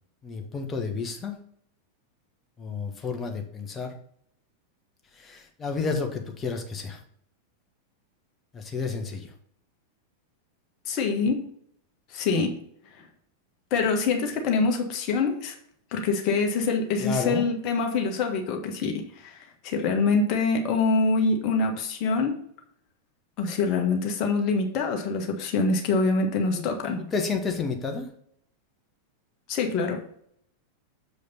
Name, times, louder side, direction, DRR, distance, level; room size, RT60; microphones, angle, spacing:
voice 1, 0.2-1.3 2.6-3.9 5.2-7.0 8.5-9.3 17.0-17.5 26.6-26.7 27.1-28.1, left 5 dB, 20° left, 4 dB, 1.4 m, -31 dB
voice 2, 10.9-11.4 12.1-12.6 13.0-13.1 13.7-15.5 15.9-22.4 23.4-27.0 29.5-30.0, left 4 dB, 40° left, 3 dB, 1.5 m, -25 dB
7.1 x 5.0 x 4.1 m, 0.66 s
figure-of-eight pair, 90°, 0 cm